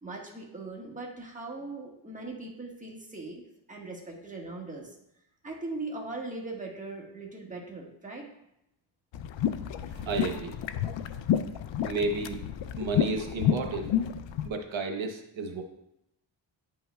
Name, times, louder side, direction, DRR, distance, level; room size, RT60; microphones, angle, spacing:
voice 1, 0.0-3.4 3.7-4.9 5.4-8.3, right 2 dB, 15° right, -2 dB, 1.5 m, -40 dB
sound 1, 9.1-14.5, left 9 dB, 75° left, 0.5 m, -30 dB
voice 2, 9.9-10.5 11.8-12.4 12.8-13.9 14.4-15.6, right 3 dB, 80° right, 5 dB, 1.0 m, -32 dB
9.7 x 5.5 x 2.3 m, 0.81 s
wide cardioid pair, 100°, 46 cm